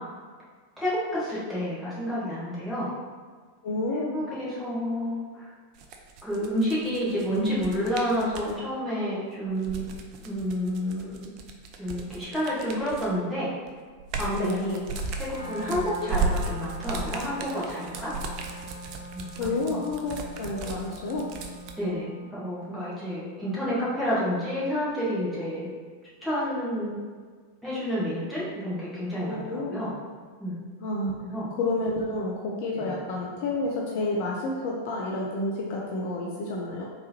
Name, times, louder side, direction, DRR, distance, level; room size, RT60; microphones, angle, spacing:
voice 1, 0.8-2.9 4.1-5.5 6.2-9.9 10.2-11.3 11.8-13.5 14.2-14.7 15.2-18.1 19.1-19.8 21.8-25.7 26.2-27.0 27.6-29.9 30.4-30.6 31.3-31.5 32.7-32.9, equal, ahead, -11 dB, 1.4 m, -29 dB
voice 2, 3.6-4.2 14.4-14.9 19.4-21.3 29.2-29.7 30.8-36.8, left 2 dB, 50° left, -2 dB, 0.4 m, -30 dB
sound 1, 5.7-8.5 9.5-13.2 13.7-21.7, right 3 dB, 40° right, 0.4 m, -35 dB
Wind instrument woodwind instrument, 15.3-22.5, right 1 dB, 85° left, 0.7 m, -43 dB
3.4 x 3.0 x 2.8 m, 1.5 s
figure-of-eight pair, 90°, 0 cm